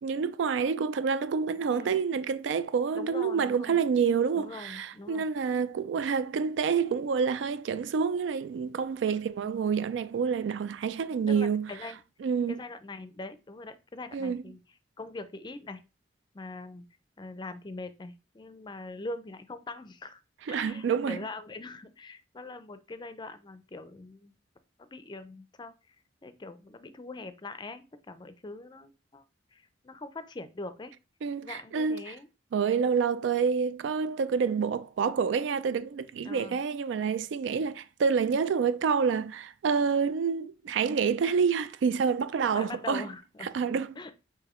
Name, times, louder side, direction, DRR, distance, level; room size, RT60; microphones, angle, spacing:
voice 1, 0.0-11.7 12.2-12.6 14.1-14.4 20.5-21.2 31.2-32.0 32.5-43.0 43.5-44.1, right 6 dB, 75° right, 0.3 m, -28 dB
voice 2, 2.9-3.8 4.3-5.3 9.0-9.6 11.3-12.0 12.5-14.6 15.0-15.8 16.3-16.8 17.2-20.2 20.5-24.3 24.9-26.0 26.2-29.2 29.5-30.9 31.4-32.3 36.2-36.6 42.5-43.5 44.0-44.1, left 2 dB, 25° left, 0.4 m, -42 dB
6.0 x 2.7 x 3.0 m
head